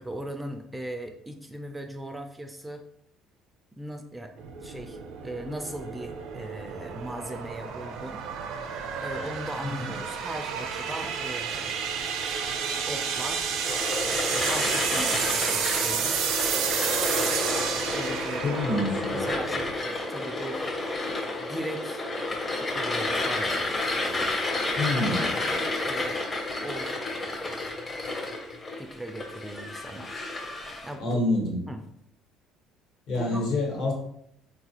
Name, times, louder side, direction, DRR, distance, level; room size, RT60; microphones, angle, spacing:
voice 1, 0.0-2.8 3.7-4.3 4.6-8.2 9.0-11.8 12.9-13.6 14.3-16.2 17.9-18.6 19.1-20.6 21.4-22.1 22.5-23.6 24.0-24.3 24.9-25.1 25.3-26.2 26.6-26.9 28.8-30.1 30.8-31.2 31.7-31.8 33.1-33.4, right 1 dB, 10° right, 5 dB, 0.3 m, -38 dB
sound 1, 4.4-19.8, right 6 dB, 75° right, 0.5 m, -31 dB
voice 2, 9.6-9.9 18.4-19.2 24.7-25.3 31.0-31.6 33.1-33.9, left 2 dB, 65° left, -1 dB, 1.2 m, -27 dB
sound 2, 13.6-30.9, left 2 dB, 25° left, 0.7 m, -30 dB
3.8 x 2.4 x 2.9 m, 0.72 s
cardioid pair, 105°, 0 cm